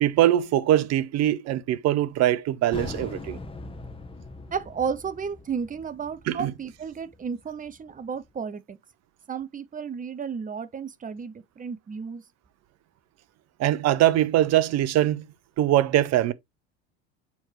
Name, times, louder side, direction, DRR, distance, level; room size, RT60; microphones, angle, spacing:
voice 1, 0.0-3.4 6.3-6.5 13.6-15.2 15.6-16.3, right 13 dB, 50° right, 0.8 m, -22 dB
sound 1, 2.7-8.0, left 3 dB, 15° left, 1.4 m, -41 dB
voice 2, 4.5-8.8 9.3-12.2, right 6 dB, 25° right, 1.0 m, -33 dB
7.1 x 4.4 x 3.2 m
hypercardioid pair, 80°, 34 cm